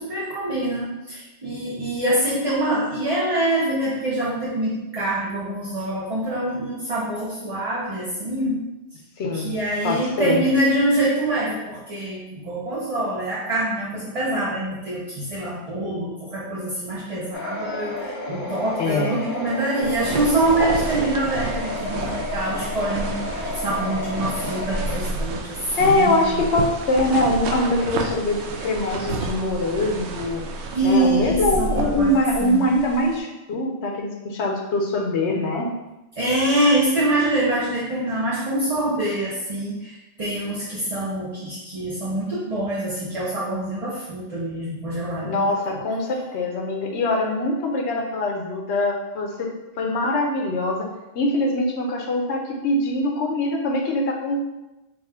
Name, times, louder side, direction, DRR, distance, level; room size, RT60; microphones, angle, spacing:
voice 1, 0.0-8.6 9.3-26.4 30.7-32.1 32.4-32.7 36.2-39.9 40.2-45.8, right 1 dB, 35° right, -7 dB, 0.7 m, -25 dB
voice 2, 9.2-9.6 9.8-10.4 18.8-19.2 25.8-30.4 30.8-35.7 45.2-49.5 49.8-50.9 51.1-54.5, left 1 dB, 70° left, 1 dB, 1.0 m, -23 dB
sound 1, 17.3-25.0, left 2 dB, 55° left, 0.8 m, -32 dB
sound 2, 19.8-33.2, right 2 dB, 70° right, 0.8 m, -30 dB
3.9 x 2.4 x 4.2 m, 0.99 s
omnidirectional pair, 1.2 m